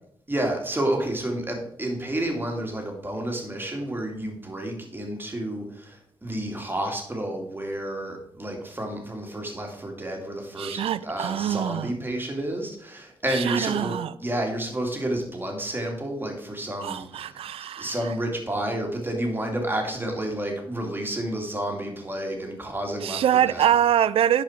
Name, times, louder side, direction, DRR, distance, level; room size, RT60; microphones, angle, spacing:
voice 1, 0.3-17.3 17.8-23.7, right 1 dB, 20° right, 2.4 m, -30 dB
voice 2, 10.6-11.9 13.3-14.1 16.8-18.1 23.0-24.4, right 10 dB, 85° right, 0.4 m, -24 dB
10.5 x 5.0 x 4.4 m
cardioid pair, 70°, 9 cm